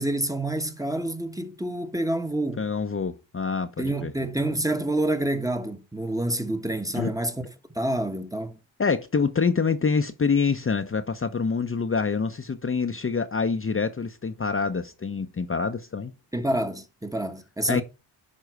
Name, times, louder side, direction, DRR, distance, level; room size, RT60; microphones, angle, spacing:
voice 1, 0.0-2.7 3.8-7.4 7.7-8.6 16.3-17.8, right 1 dB, 10° right, 1.2 m, -28 dB
voice 2, 2.6-4.1 6.9-7.1 8.8-16.1 17.7-17.8, left 5 dB, 30° left, 0.8 m, -26 dB
11.0 x 3.8 x 4.6 m
cardioid pair, 55°, 45 cm